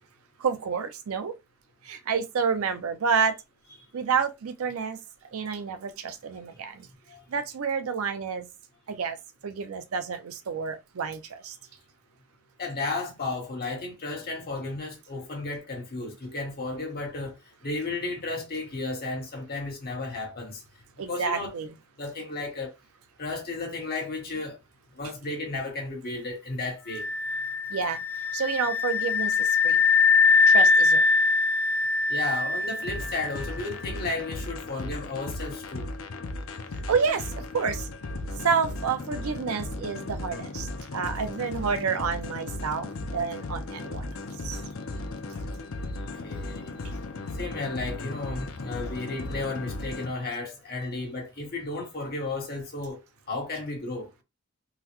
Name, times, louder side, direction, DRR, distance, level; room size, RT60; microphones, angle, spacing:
voice 1, 0.4-1.3 1.9-3.3 3.9-5.0 5.3-6.7 7.3-8.5 9.0-9.2 9.4-11.2 11.5-11.6 21.0-21.7 27.7-28.0 28.3-29.3 29.6-29.8 30.5-31.0 36.9-37.2 37.5-37.8 38.4-40.6 40.9-44.0 44.4-44.6, right 6 dB, 70° right, 0.5 m, -28 dB
voice 2, 12.6-20.6 21.1-21.5 22.0-22.7 23.2-24.6 24.9-27.1 32.1-35.9 46.2-46.7 47.3-53.0 53.3-54.1, left 3 dB, 45° left, 1.2 m, -33 dB
sound 1, 26.9-33.7, left 4 dB, 10° left, 0.7 m, -23 dB
sound 2, 32.8-50.1, left 2 dB, 65° left, 0.5 m, -36 dB
3.8 x 2.1 x 2.9 m
head